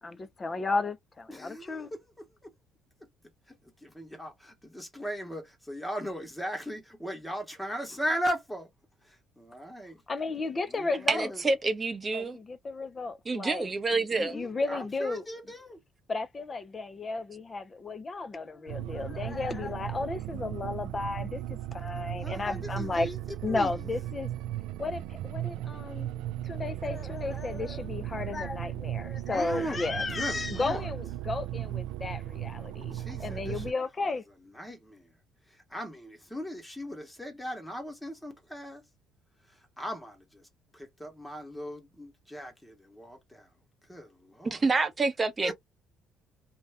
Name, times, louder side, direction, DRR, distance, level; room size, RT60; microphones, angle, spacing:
voice 1, 0.0-1.9 10.1-11.3 12.1-15.2 16.1-23.1 23.4-24.3 24.8-26.1 26.4-34.2, left 3 dB, 25° left, 0.4 m, -34 dB
voice 2, 1.3-2.5 3.8-8.7 9.0-10.0 10.7-11.4 14.1-15.8 22.2-23.2 23.5-23.7 29.3-29.8 30.1-30.9 32.9-33.6 34.0-34.1 34.5-35.1 35.5-38.8 39.8-40.4 40.7-43.5 43.9-44.6 45.4-45.5, equal, 5° left, 0.9 m, -38 dB
voice 3, 11.1-12.4 13.3-14.4 44.4-45.5, right 3 dB, 20° right, 0.7 m, -27 dB
sound 1, 18.7-33.7, right 13 dB, 85° right, 0.3 m, -37 dB
2.6 x 2.1 x 3.3 m
cardioid pair, 140°, 0 cm